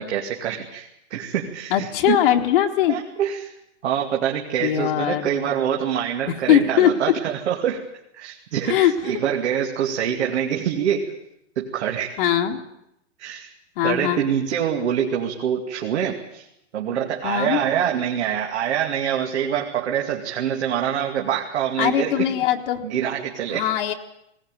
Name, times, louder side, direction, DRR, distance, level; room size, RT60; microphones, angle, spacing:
voice 1, 0.0-2.2 2.9-3.5 3.8-7.8 8.1-11.1 11.6-12.2 13.2-13.5 13.8-16.5 16.7-22.3 22.8-23.6, right 9 dB, 65° right, 1 dB, 2.6 m, -25 dB
voice 2, 1.7-3.0 4.6-5.5 6.5-6.9 8.6-8.9 12.2-12.6 13.8-14.2 17.2-17.6 21.8-22.8 23.5-23.9, left 11 dB, 50° left, 2 dB, 1.6 m, -20 dB
19.5 x 18.5 x 9.1 m, 0.80 s
supercardioid pair, 165°, 37 cm